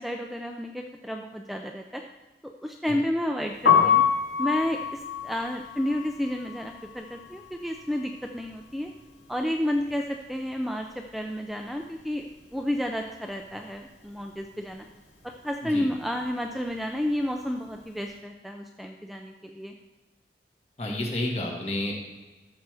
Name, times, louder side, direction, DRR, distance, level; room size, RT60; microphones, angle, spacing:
voice 1, 0.0-2.0 2.4-4.0 4.4-8.9 9.3-12.3 12.5-14.8 15.2-19.7, left 1 dB, ahead, 2 dB, 0.4 m, -31 dB
Piano, 3.5-9.5 9.7-11.3 11.6-18.0, left 7 dB, 85° left, 2.7 m, -28 dB
voice 2, 20.8-21.9, left 1 dB, 35° left, 0 dB, 1.6 m, -30 dB
13.5 x 6.7 x 3.4 m, 1.2 s
head